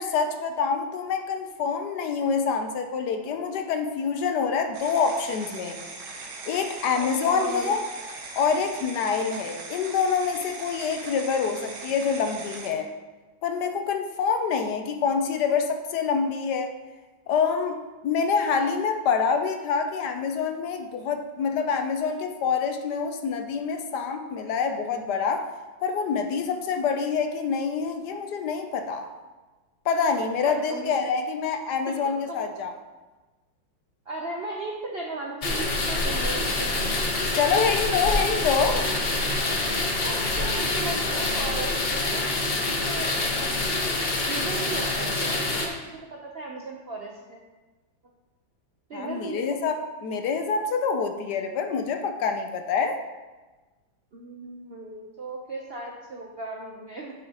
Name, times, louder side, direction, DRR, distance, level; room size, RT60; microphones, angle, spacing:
voice 1, 0.0-5.8 6.5-7.8 8.4-12.9 13.4-16.7 17.3-17.8 18.0-25.5 25.8-29.1 29.8-32.7 37.3-38.9 48.9-53.0, left 5 dB, 70° left, 6 dB, 1.1 m, -26 dB
sound 1, 4.7-12.7, right 3 dB, 90° right, 1.9 m, -40 dB
voice 2, 7.0-7.7 9.5-9.6 30.4-31.0 31.9-32.4 34.1-36.9 40.0-42.3 42.6-43.1 43.4-43.9 44.2-47.4 48.9-49.6 54.1-57.1, right 2 dB, 65° right, -1 dB, 0.6 m, -37 dB
sound 2, 35.4-45.7, left 2 dB, 45° left, 0.8 m, -26 dB
9.0 x 7.7 x 2.9 m, 1.2 s
omnidirectional pair, 2.1 m